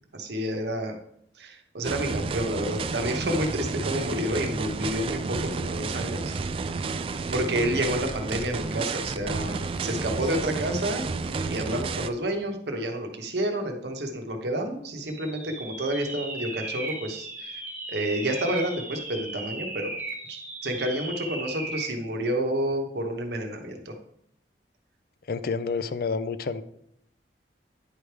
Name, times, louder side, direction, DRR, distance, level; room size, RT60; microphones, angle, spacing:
voice 1, 0.1-0.9 1.4-6.3 7.3-11.0 11.5-17.5 17.9-19.9 20.3-23.9, right 1 dB, 70° right, 4 dB, 1.0 m, -29 dB
sound 1, 1.8-12.1, right 4 dB, 30° right, 0.3 m, -31 dB
sound 2, 15.1-22.0, right 2 dB, 10° right, 0.9 m, -36 dB
voice 2, 25.3-26.6, left 4 dB, 55° left, 12 dB, 0.4 m, -29 dB
9.8 x 3.3 x 4.6 m, 0.71 s
head